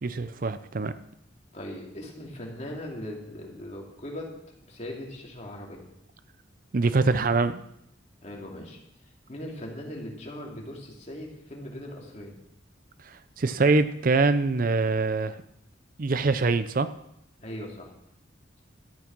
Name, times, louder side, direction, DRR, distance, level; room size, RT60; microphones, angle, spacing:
voice 1, 0.0-0.9 6.7-7.6 13.0-15.4 16.0-16.9, right 3 dB, 45° right, 12 dB, 0.5 m, -24 dB
voice 2, 1.5-4.3 4.7-5.8 8.2-8.8 9.3-12.3 17.4-17.9, left 1 dB, 35° left, -1 dB, 2.8 m, -39 dB
13.0 x 8.7 x 6.0 m, 0.79 s
head